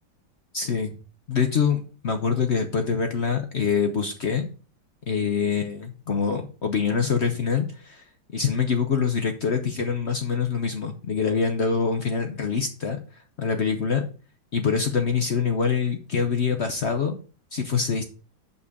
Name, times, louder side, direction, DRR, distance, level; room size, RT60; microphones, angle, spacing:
voice 1, 0.5-0.9 1.3-4.5 5.1-8.0 8.3-13.0 13.4-14.0 14.5-17.2 17.5-18.1, left 6 dB, 65° left, 6 dB, 0.6 m, -25 dB
5.5 x 5.4 x 6.5 m, 0.37 s
omnidirectional pair, 2.1 m